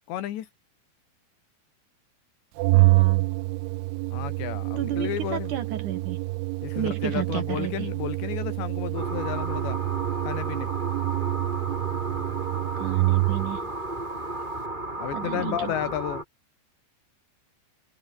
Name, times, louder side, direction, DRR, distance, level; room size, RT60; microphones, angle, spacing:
voice 1, 0.1-0.5 4.1-5.5 6.6-9.8 10.3-10.7 15.0-16.2, left 12 dB, 70° left, 3.7 m, -32 dB
Organ, 2.6-13.6, right 23 dB, 85° right, 2.9 m, -26 dB
voice 2, 2.7-3.3 4.8-6.2 6.7-7.9 12.8-13.7 15.1-15.7, right 10 dB, 60° right, 2.2 m, -32 dB
sound 1, 8.9-16.2, right 2 dB, 10° right, 3.3 m, -33 dB
omnidirectional pair, 5.5 m